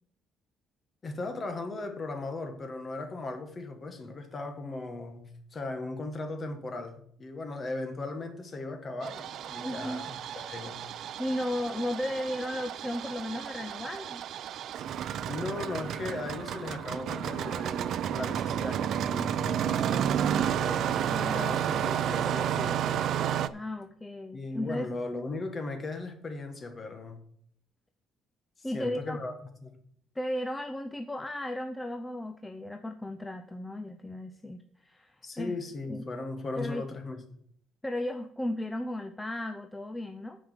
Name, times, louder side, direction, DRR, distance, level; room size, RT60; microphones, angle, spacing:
voice 1, 1.0-10.9 15.3-23.1 24.3-27.3 28.6-29.3 29.6-29.8 35.2-37.2, left 2 dB, 25° left, 1.5 m, -38 dB
Engine starting, 9.0-23.5, right 9 dB, 55° right, 0.4 m, -31 dB
voice 2, 9.6-10.0 11.2-14.2 21.1-21.8 23.5-24.9 28.6-29.2 30.2-35.5 35.9-36.1 36.6-36.9 37.8-40.4, left 1 dB, 10° left, 0.5 m, -35 dB
9.5 x 5.0 x 6.5 m
cardioid pair, 160°, 0 cm